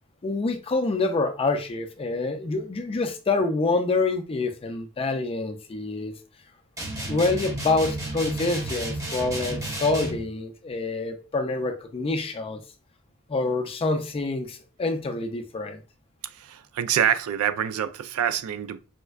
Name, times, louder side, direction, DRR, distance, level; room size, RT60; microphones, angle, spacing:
voice 1, 0.2-6.2 7.1-12.6 13.3-15.8, left 3 dB, 25° left, 0.4 m, -26 dB
sound 1, 6.8-10.3, right 1 dB, 15° right, 0.8 m, -32 dB
voice 2, 16.2-18.8, right 9 dB, 75° right, 0.3 m, -26 dB
4.3 x 2.2 x 2.3 m
head